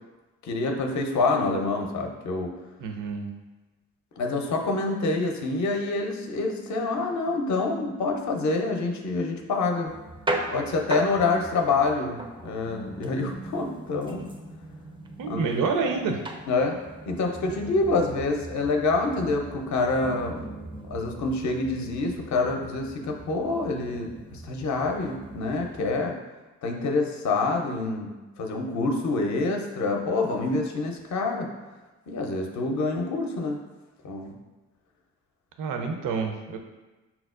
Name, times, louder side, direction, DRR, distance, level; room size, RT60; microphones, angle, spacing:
voice 1, 0.4-2.5 4.2-9.9 10.5-14.3 15.2-15.5 16.5-16.8 17.1-20.4 20.9-26.2 26.6-31.5 32.1-33.6 34.0-34.3, left 3 dB, 50° left, 2 dB, 0.6 m, -27 dB
voice 2, 2.8-3.3 15.2-16.2 35.6-36.6, right 4 dB, 60° right, 4 dB, 0.6 m, -28 dB
sound 1, 9.9-26.0, right 2 dB, 15° right, 0.4 m, -38 dB
5.7 x 2.0 x 2.4 m, 1.2 s
hypercardioid pair, 50°, 37 cm